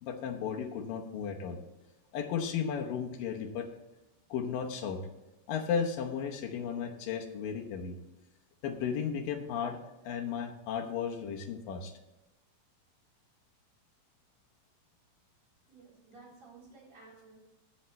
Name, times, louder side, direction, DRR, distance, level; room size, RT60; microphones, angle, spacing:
voice 1, 0.0-1.6 2.1-3.7 4.3-5.0 5.5-7.9 8.6-11.9, left 7 dB, 85° left, 3 dB, 2.8 m, -34 dB
voice 2, 15.7-17.4, right 3 dB, 50° right, -5 dB, 4.7 m, -54 dB
15.5 x 5.8 x 3.2 m, 1.0 s
omnidirectional pair, 3.9 m